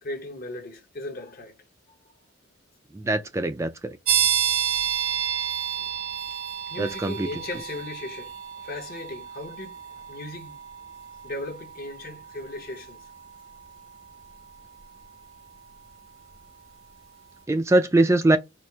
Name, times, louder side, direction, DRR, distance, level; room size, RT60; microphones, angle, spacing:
voice 1, 0.0-1.5 6.7-10.6 11.2-13.0, left 2 dB, 45° left, 0.9 m, -37 dB
voice 2, 2.9-4.0 6.8-7.3 17.5-18.4, right 2 dB, 15° right, 0.3 m, -22 dB
sound 1, 4.1-16.6, right 9 dB, 80° right, 1.0 m, -31 dB
4.3 x 2.6 x 4.5 m
head